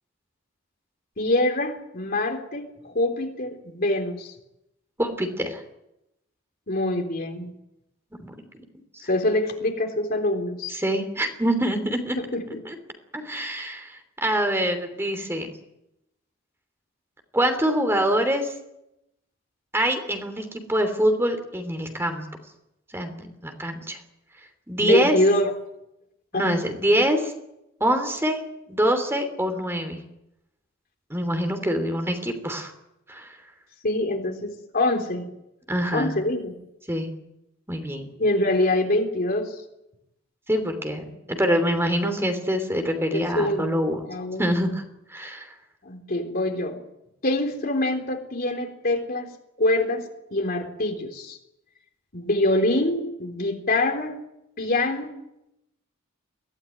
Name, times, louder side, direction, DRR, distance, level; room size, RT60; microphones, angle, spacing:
voice 1, 1.2-4.3 6.7-7.5 9.1-10.8 12.2-12.6 24.8-25.5 26.3-26.6 33.8-35.3 35.9-36.5 38.2-39.5 42.0-42.2 43.1-43.7 44.0-44.5 45.8-46.8 47.2-49.3 49.6-50.0 50.3-51.4 52.1-54.1 54.6-55.1, left 1 dB, 50° left, 3 dB, 3.7 m, -25 dB
voice 2, 5.0-5.6 8.2-8.3 10.7-12.2 12.6-12.8 13.1-15.5 17.3-18.5 19.7-22.2 22.9-24.0 24.7-25.1 26.3-27.3 27.8-28.4 28.7-30.0 31.1-32.7 33.1-33.3 35.7-36.1 36.9-37.1 37.7-38.1 40.5-44.0 44.4-44.8 45.1-45.5, equal, 10° right, 6 dB, 3.1 m, -25 dB
23.0 x 17.0 x 9.7 m, 0.87 s
head